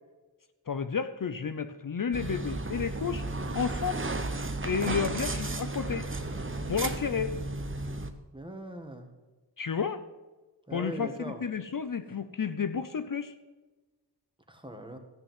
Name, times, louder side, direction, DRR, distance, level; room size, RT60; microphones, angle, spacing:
voice 1, 0.7-3.3 3.5-4.0 4.6-6.1 6.7-7.4 9.6-10.0 10.7-13.3, left 6 dB, 50° left, 10 dB, 0.7 m, -31 dB
sound 1, 2.1-8.1, right 2 dB, 30° right, 1.0 m, -33 dB
voice 2, 8.3-9.1 10.7-11.4 14.5-15.0, right 1 dB, 10° right, 5 dB, 1.7 m, -40 dB
14.0 x 6.8 x 7.5 m, 1.2 s
wide cardioid pair, 75°, 41 cm